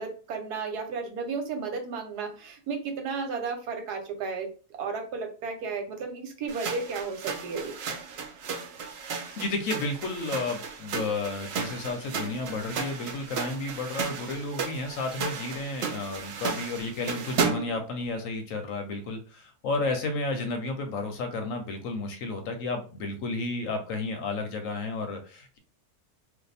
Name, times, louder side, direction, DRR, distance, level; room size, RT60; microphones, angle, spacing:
voice 1, 0.0-4.5 4.8-7.7 12.2-12.3, right 4 dB, 85° right, 5 dB, 1.3 m, -33 dB
sound 1, 6.5-17.8, right 5 dB, 65° right, 0.6 m, -34 dB
voice 2, 9.4-25.6, left 3 dB, 70° left, 5 dB, 0.9 m, -32 dB
2.6 x 2.3 x 4.0 m, 0.37 s
omnidirectional pair, 1.6 m